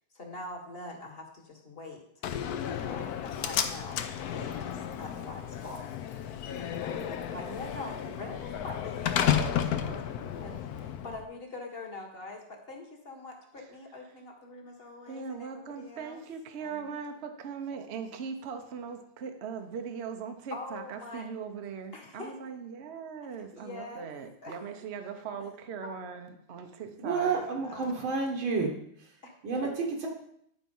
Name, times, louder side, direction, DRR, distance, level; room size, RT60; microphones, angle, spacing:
voice 1, 0.1-5.8 6.6-9.9 10.2-16.2 16.6-17.0 20.5-21.3 21.9-22.3 23.5-24.1 24.4-24.6 25.8-25.9 27.6-28.0 29.2-29.3, left 2 dB, 30° left, 1 dB, 1.5 m, -44 dB
Slam, 2.2-11.2, left 9 dB, 65° left, 1.0 m, -32 dB
voice 2, 13.6-14.2 15.1-27.4, right 6 dB, 60° right, 6 dB, 0.7 m, -40 dB
voice 3, 27.0-28.7 29.4-30.1, right 4 dB, 80° right, -1 dB, 2.1 m, -30 dB
10.5 x 4.4 x 5.4 m, 0.72 s
omnidirectional pair, 2.1 m